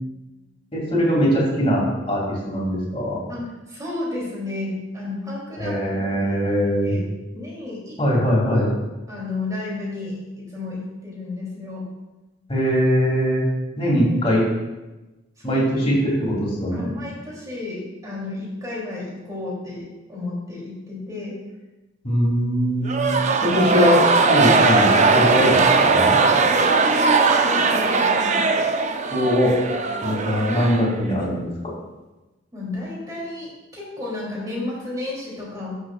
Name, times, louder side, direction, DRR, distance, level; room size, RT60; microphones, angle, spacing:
voice 1, 0.7-3.2 5.6-6.9 8.0-8.7 12.5-13.4 13.8-14.5 15.4-16.9 22.0-23.1 23.4-26.2 29.1-29.5 30.0-31.5, equal, 30° left, -5 dB, 2.5 m, -21 dB
voice 2, 3.3-6.0 6.3-6.4 6.8-7.0 7.3-8.0 8.5-8.7 9.1-11.9 15.4-15.9 16.7-21.4 26.5-28.5 32.5-35.8, left 2 dB, 20° right, -5 dB, 2.9 m, -32 dB
sound 1, 22.8-31.3, right 4 dB, 35° right, 0.5 m, -19 dB
13.0 x 6.3 x 2.4 m, 1.1 s
head